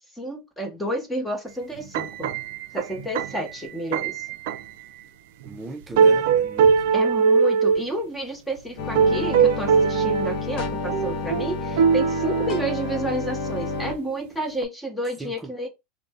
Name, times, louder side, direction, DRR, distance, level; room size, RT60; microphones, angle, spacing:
voice 1, 0.2-2.3 2.7-4.3 6.9-15.7, right 1 dB, 5° left, 0.9 m, -30 dB
sound 1, 1.8-4.8 5.4-5.6 6.0-7.8 8.8-10.4 10.9-13.3 13.7-14.0 14.6-14.7, right 6 dB, 70° right, 0.3 m, -21 dB
voice 2, 5.4-7.0 15.2-15.7, right 2 dB, 15° right, 0.5 m, -38 dB
sound 2, 8.8-13.9, left 4 dB, 60° left, 0.6 m, -30 dB
2.5 x 2.1 x 3.4 m
hypercardioid pair, 115°, 0 cm